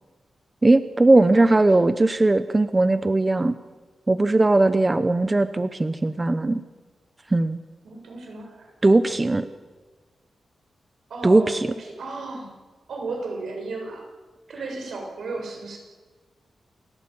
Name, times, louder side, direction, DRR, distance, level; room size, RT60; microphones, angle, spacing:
voice 1, 0.6-3.5 4.1-6.6 7.3-7.6 8.8-9.5 11.2-11.7, right 2 dB, 20° right, 12 dB, 0.8 m, -19 dB
voice 2, 1.1-1.5 7.8-8.7 11.1-12.5 12.9-14.1 14.5-15.8, right 3 dB, 80° right, 2 dB, 6.5 m, -34 dB
29.0 x 16.5 x 8.7 m, 1.3 s
wide cardioid pair, 150°, 0 cm